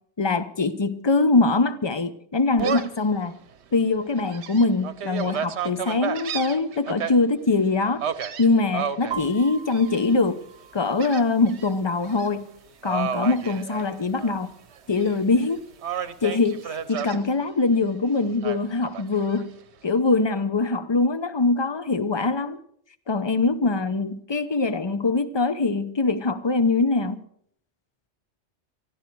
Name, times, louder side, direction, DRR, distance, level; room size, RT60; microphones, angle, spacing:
voice 1, 0.2-3.4 3.7-8.0 8.4-10.4 10.7-12.5 12.8-14.5 14.9-15.6 15.9-19.5 19.8-22.6 23.1-27.2, left 3 dB, 25° left, 0.7 m, -23 dB
Gull seagull, 2.6-3.0 3.5-3.6 4.2-7.1 8.0-9.2 9.7-10.1 11.0-11.7 12.0-12.3 12.8-14.4 14.7-15.5 15.8-17.2 18.4-19.4, right 8 dB, 70° right, 1.1 m, -31 dB
sound 1, 9.1-16.9, right 8 dB, 45° right, 1.1 m, -44 dB
20.0 x 13.5 x 4.6 m
omnidirectional pair, 1.2 m